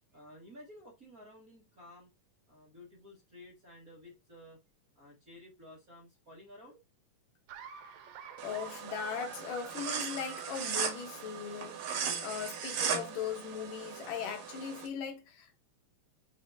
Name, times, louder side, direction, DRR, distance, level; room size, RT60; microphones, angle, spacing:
voice 1, 0.1-2.1 2.5-4.6 4.9-6.8, left 1 dB, 35° right, 1.7 m, -53 dB
Laughter, 7.5-11.5, right 8 dB, 75° right, 2.5 m, -48 dB
voice 2, 8.4-15.6, left 7 dB, 70° left, 2.6 m, -39 dB
sound 1, 8.4-14.9, right 7 dB, 60° right, 2.4 m, -38 dB
5.8 x 5.7 x 2.8 m
omnidirectional pair, 4.1 m